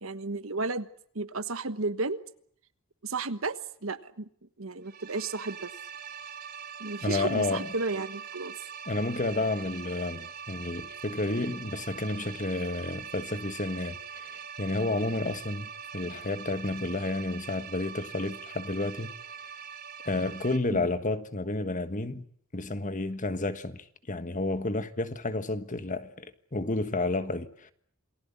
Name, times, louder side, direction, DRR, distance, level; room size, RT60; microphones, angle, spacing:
voice 1, 0.0-0.9 1.1-2.2 3.0-4.3 4.6-5.7 6.8-8.5 20.7-20.9, right 3 dB, 65° right, 1.3 m, -33 dB
sound 1, 4.8-20.6, right 7 dB, 45° right, 4.3 m, -43 dB
voice 2, 7.0-7.7 8.9-19.1 20.0-22.2 22.5-26.2 26.5-27.7, left 2 dB, 35° left, 1.5 m, -31 dB
28.0 x 20.0 x 8.6 m
head